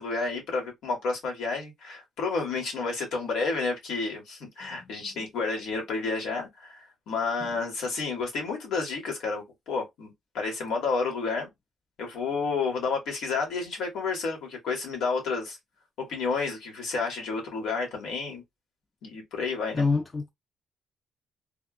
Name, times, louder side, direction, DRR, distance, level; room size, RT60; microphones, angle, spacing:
voice 1, 0.0-11.5 12.0-15.6 16.0-18.4 19.0-19.8, left 4 dB, 80° left, 1.5 m, -30 dB
voice 2, 4.6-5.3 7.4-7.5 19.7-20.3, left 4 dB, 25° left, 0.5 m, -29 dB
3.4 x 2.4 x 2.4 m
cardioid pair, 90°, 0 cm